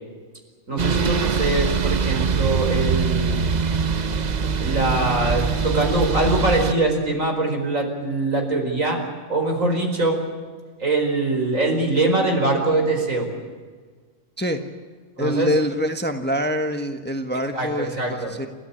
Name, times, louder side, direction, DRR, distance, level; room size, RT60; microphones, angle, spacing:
voice 1, 0.7-3.4 4.6-9.0 9.3-10.2 10.8-13.3 15.2-15.5 17.3-18.3, right 2 dB, 70° right, 3 dB, 5.1 m, -23 dB
sound 1, 0.8-6.7, right 5 dB, 40° right, 0.8 m, -23 dB
voice 2, 15.2-18.5, equal, 10° left, 6 dB, 1.4 m, -25 dB
29.5 x 14.5 x 10.0 m, 1.5 s
omnidirectional pair, 1.4 m